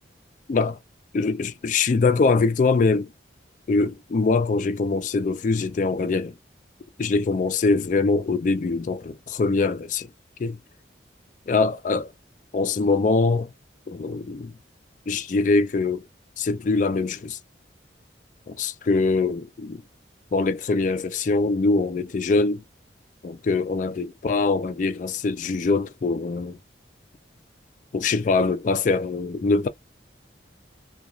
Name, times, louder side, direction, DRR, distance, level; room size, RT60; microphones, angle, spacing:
voice 1, 1.1-3.1 3.7-6.3 7.0-10.1 10.4-10.6 11.5-12.1 12.5-13.5 13.9-14.5 15.1-16.0 16.4-17.4 18.5-19.8 20.3-22.6 23.2-26.6 27.9-29.7, left 3 dB, 45° left, 0.3 m, -23 dB
2.4 x 2.2 x 2.9 m
head